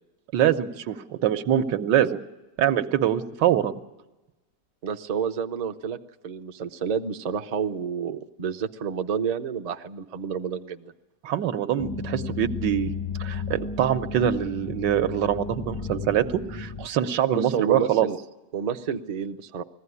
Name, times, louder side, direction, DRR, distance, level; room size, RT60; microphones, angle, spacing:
voice 1, 0.3-2.2 2.6-3.7 11.2-18.1, right 10 dB, 85° right, 8 dB, 1.5 m, -24 dB
voice 2, 4.8-6.0 6.2-10.9 17.3-18.2 18.5-19.6, right 7 dB, 55° right, 7 dB, 0.4 m, -29 dB
sound 1, 11.8-16.9, left 5 dB, 30° left, 0.5 m, -33 dB
20.5 x 15.5 x 9.7 m, 1.1 s
omnidirectional pair, 1.9 m